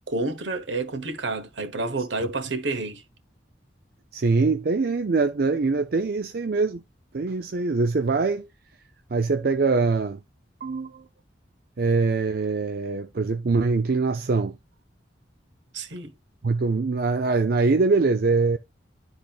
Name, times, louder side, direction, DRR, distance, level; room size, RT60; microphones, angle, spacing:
voice 1, 0.1-3.0 15.7-16.1, right 3 dB, 75° right, 1.1 m, -29 dB
voice 2, 4.1-6.8 7.1-8.5 9.1-10.2 10.6-11.0 11.8-14.6 16.4-18.6, right 4 dB, 55° right, 0.5 m, -23 dB
12.0 x 4.0 x 2.4 m
head